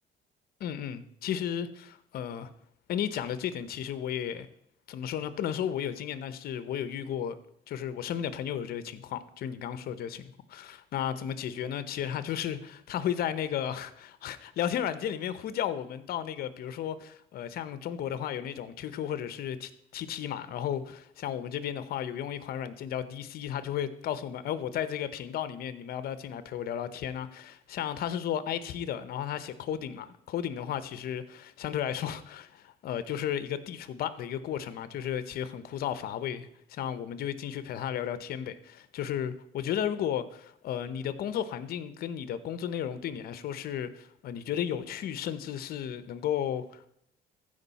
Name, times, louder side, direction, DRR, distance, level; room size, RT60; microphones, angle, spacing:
voice 1, 0.6-2.5 2.9-4.5 4.9-7.4 7.7-46.9, left 9 dB, 65° left, 0.8 m, -34 dB
14.5 x 5.1 x 4.1 m
cardioid pair, 110°, 17 cm